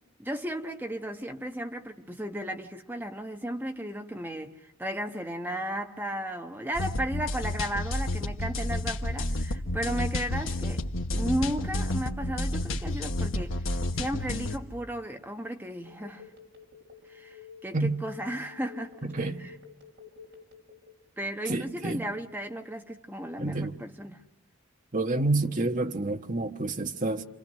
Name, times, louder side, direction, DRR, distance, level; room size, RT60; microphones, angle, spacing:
voice 1, 0.2-10.8 11.1-16.3 17.1-19.1 19.4-19.5 21.2-24.2, equal, 10° right, 1.1 m, -35 dB
sound 1, 6.7-14.6, left 1 dB, 65° left, 1.3 m, -30 dB
Telephone, 15.8-21.1, left 7 dB, 55° right, 4.6 m, -49 dB
voice 2, 19.0-19.4 21.5-22.0 23.4-23.7 24.9-27.2, right 2 dB, 40° right, 1.3 m, -28 dB
29.0 x 27.0 x 6.5 m
head